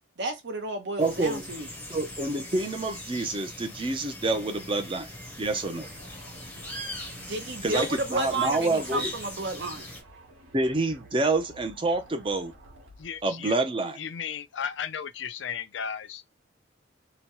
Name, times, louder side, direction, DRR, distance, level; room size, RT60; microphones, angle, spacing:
voice 1, 0.2-1.7 7.3-9.9, right 2 dB, 60° right, 0.8 m, -32 dB
sound 1, 1.0-10.0, left 1 dB, 5° left, 0.8 m, -40 dB
voice 2, 1.0-1.5 1.9-5.1 5.4-5.9 7.6-9.1 10.5-12.5 13.2-14.0, right 2 dB, 25° right, 0.6 m, -27 dB
sound 2, 5.1-13.3, right 2 dB, 80° right, 1.3 m, -52 dB
voice 3, 13.0-13.5 14.0-16.2, left 7 dB, 70° left, 0.5 m, -35 dB
2.9 x 2.2 x 2.9 m
head